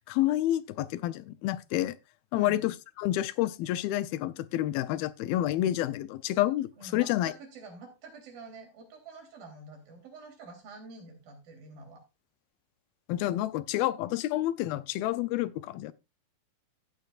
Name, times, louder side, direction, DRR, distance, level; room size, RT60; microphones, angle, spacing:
voice 1, 0.1-1.9 2.3-7.3 13.1-15.9, left 14 dB, 90° left, 2.6 m, -29 dB
voice 2, 2.3-2.7 6.8-12.0, right 3 dB, 75° right, 5.2 m, -48 dB
14.5 x 8.9 x 2.5 m
omnidirectional pair, 4.2 m